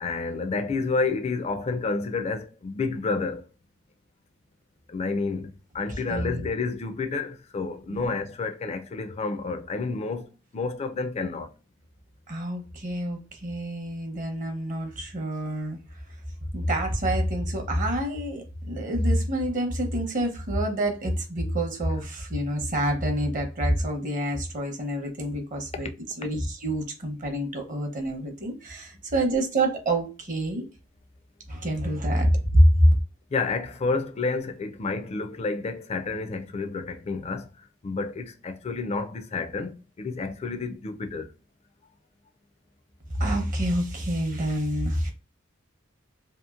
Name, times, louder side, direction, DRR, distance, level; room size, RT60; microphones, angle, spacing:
voice 1, 0.0-3.5 4.9-11.5 33.3-41.3, left 4 dB, 30° left, 0.4 m, -30 dB
voice 2, 6.1-6.5 7.9-8.1 12.3-15.8 16.5-25.9 26.2-30.6 31.5-32.9 43.2-45.1, right 1 dB, 40° right, 0.7 m, -26 dB
2.8 x 2.5 x 2.4 m
head